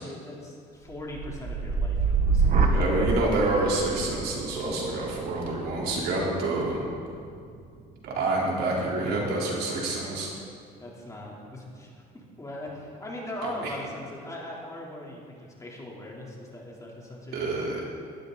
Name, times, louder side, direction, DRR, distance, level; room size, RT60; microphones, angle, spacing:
voice 1, 0.0-2.9 10.8-17.7, left 1 dB, 20° left, -3 dB, 3.5 m, -40 dB
sound 1, 0.9-8.9 9.4-9.9, right 4 dB, 50° right, 1.6 m, -28 dB
voice 2, 2.7-6.8 8.0-10.3 13.4-13.5 17.3-17.8, right 2 dB, 70° right, -3 dB, 3.9 m, -27 dB
19.0 x 13.0 x 4.1 m, 2.3 s
cardioid pair, 110°, 17 cm